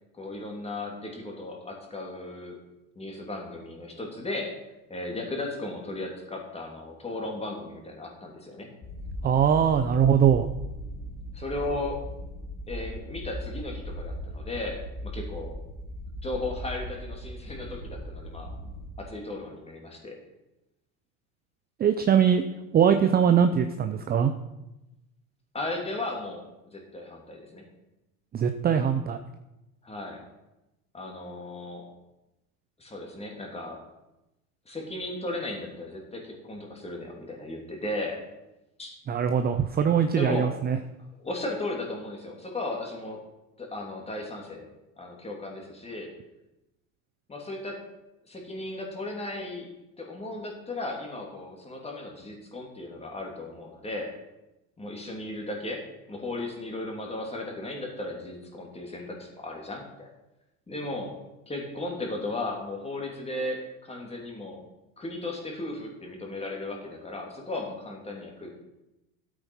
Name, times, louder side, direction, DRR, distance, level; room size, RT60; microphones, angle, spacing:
voice 1, 0.1-2.6 2.9-4.5 4.9-8.7 11.3-12.0 12.7-15.6 16.2-18.5 19.0-20.1 25.5-26.5 26.7-27.6 29.8-30.2 30.9-31.9 32.8-33.8 34.6-38.2 38.8-39.0 40.2-40.5 41.2-43.2 43.6-44.7 45.0-46.1 47.3-47.8 48.3-49.7 50.0-54.1 54.8-60.1 60.7-61.1 61.5-64.6 65.0-68.5, left 2 dB, 15° left, 0 dB, 3.0 m, -36 dB
sound 1, 8.8-18.9, equal, 40° left, 3.2 m, -38 dB
voice 2, 9.2-10.5 21.8-22.4 22.7-24.3 28.3-29.2 39.1-40.8, right 8 dB, 25° right, 8 dB, 0.6 m, -22 dB
12.5 x 8.3 x 5.5 m, 0.97 s
supercardioid pair, 110°, 41 cm